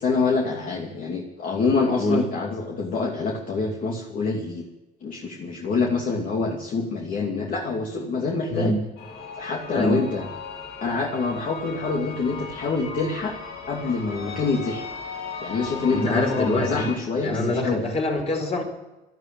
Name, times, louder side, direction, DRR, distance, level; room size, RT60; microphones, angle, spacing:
voice 1, 0.0-4.6 5.0-8.7 9.4-10.3 10.8-13.3 13.7-14.8 15.4-17.8, left 4 dB, 55° left, 0 dB, 2.6 m, -26 dB
sound 1, 9.0-17.0, left 5 dB, 75° left, 2.9 m, -37 dB
voice 2, 15.9-16.8 17.2-18.6, left 1 dB, 40° left, 3 dB, 4.8 m, -24 dB
13.0 x 12.5 x 8.9 m, 1.0 s
cardioid pair, 110°, 17 cm